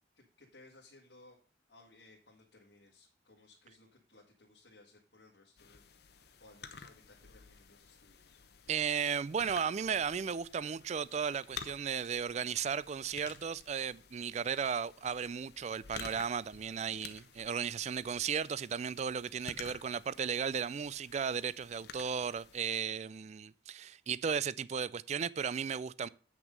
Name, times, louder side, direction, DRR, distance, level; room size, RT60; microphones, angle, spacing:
voice 1, 0.1-1.4 1.7-5.8 6.4-8.4, left 2 dB, 80° left, 1.8 m, -61 dB
sound 1, 5.6-22.8, left 6 dB, 60° left, 0.9 m, -52 dB
voice 2, 8.7-26.1, right 7 dB, 35° right, 0.3 m, -35 dB
8.1 x 6.1 x 5.2 m
head